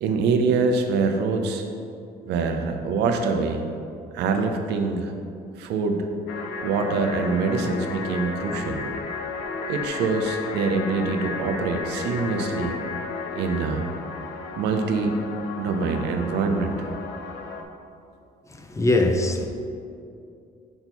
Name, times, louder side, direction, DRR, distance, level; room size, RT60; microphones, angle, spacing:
voice 1, 0.0-1.6 2.2-3.6 4.1-5.1 5.6-6.1 6.6-8.8 9.7-12.8 13.3-13.9 14.6-15.2 15.6-16.9, right 4 dB, 85° right, 5 dB, 0.7 m, -24 dB
sound 1, 6.3-17.6, left 4 dB, 80° left, 0.7 m, -33 dB
voice 2, 18.6-19.5, left 2 dB, 15° left, 4 dB, 0.6 m, -21 dB
5.6 x 4.5 x 5.5 m, 2.5 s
cardioid pair, 110°, 17 cm